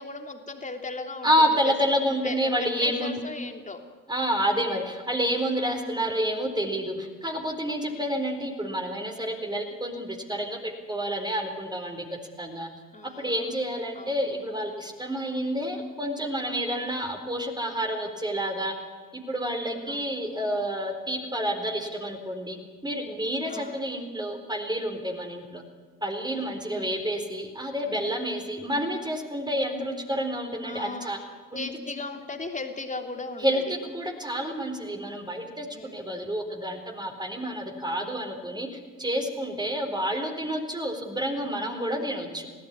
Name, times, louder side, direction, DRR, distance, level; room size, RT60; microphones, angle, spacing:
voice 1, 0.0-1.7 2.2-3.8 5.8-6.1 7.9-8.0 12.9-13.5 13.9-14.3 19.9-20.2 23.5-23.8 26.7-27.0 30.6-31.1 31.5-33.6 35.7-36.3 42.0-42.4, left 3 dB, 15° left, 4 dB, 3.3 m, -38 dB
voice 2, 1.2-3.2 4.1-12.7 13.0-18.7 19.1-25.6 26.0-31.2 31.5-31.6 33.4-42.5, equal, 10° right, 4 dB, 4.2 m, -29 dB
27.0 x 17.0 x 9.9 m, 1.5 s
figure-of-eight pair, 60°, 45 cm